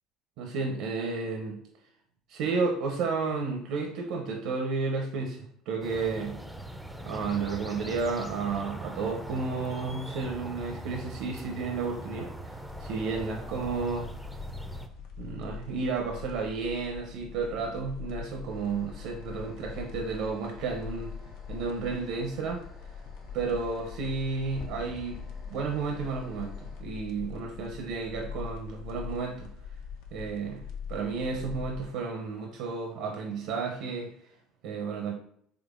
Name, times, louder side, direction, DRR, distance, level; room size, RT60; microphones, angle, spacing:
voice 1, 0.4-1.6 2.3-6.4 7.0-14.1 15.2-21.1 21.5-22.6 23.3-25.2 25.5-29.5 30.1-30.6 30.9-34.1 34.6-35.1, right 4 dB, 75° right, 2 dB, 0.6 m, -32 dB
sound 1, 5.8-14.9, right 1 dB, ahead, 0.4 m, -41 dB
sound 2, 12.6-31.9, left 6 dB, 80° left, 0.6 m, -43 dB
sound 3, 18.5-26.8, left 1 dB, 65° left, 1.2 m, -52 dB
3.7 x 3.2 x 2.4 m, 0.69 s
supercardioid pair, 85°, 0 cm